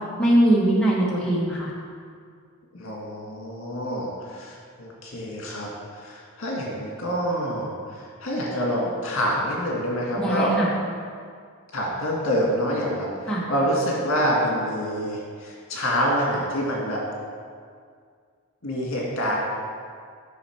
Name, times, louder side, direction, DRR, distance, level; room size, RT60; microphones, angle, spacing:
voice 1, 0.0-1.7 10.2-10.7 13.3-13.4, right 1 dB, 5° left, -7 dB, 1.3 m, -21 dB
voice 2, 2.7-10.6 11.7-17.0 18.6-19.4, equal, 65° left, -3 dB, 1.9 m, -27 dB
8.6 x 5.9 x 4.6 m, 2.1 s
head